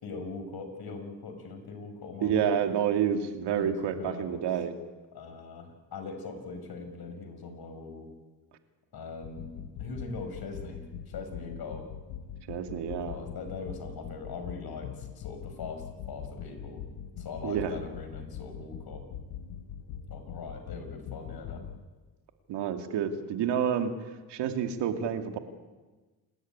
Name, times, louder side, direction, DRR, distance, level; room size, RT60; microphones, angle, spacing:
voice 1, 0.0-2.6 3.5-4.4 5.1-8.1 8.9-11.9 13.1-16.9 17.2-19.0 20.1-21.7, left 4 dB, 65° left, 6 dB, 5.8 m, -41 dB
voice 2, 2.2-4.7 12.5-13.2 17.4-17.8 22.5-24.0 24.3-25.4, right 8 dB, 85° right, 6 dB, 2.4 m, -29 dB
sound 1, 9.2-21.8, left 8 dB, 90° left, 1.4 m, -42 dB
28.5 x 13.0 x 9.6 m, 1.2 s
cardioid pair, 75°, 40 cm